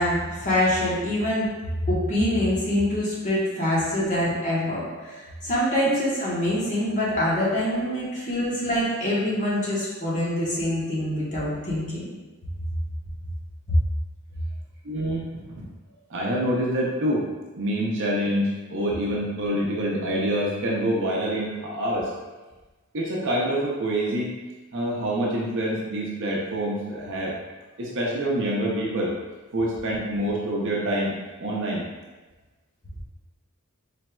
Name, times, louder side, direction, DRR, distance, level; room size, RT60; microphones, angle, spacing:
voice 1, 0.0-1.4 1.8-12.0, left 1 dB, 35° left, -7 dB, 1.2 m, -25 dB
voice 2, 14.8-15.4 16.1-17.2 17.6-22.1 22.9-24.3 24.7-27.4 27.8-29.1 29.5-31.8, right 1 dB, 55° right, -4 dB, 0.7 m, -26 dB
4.2 x 3.4 x 2.3 m, 1.2 s
head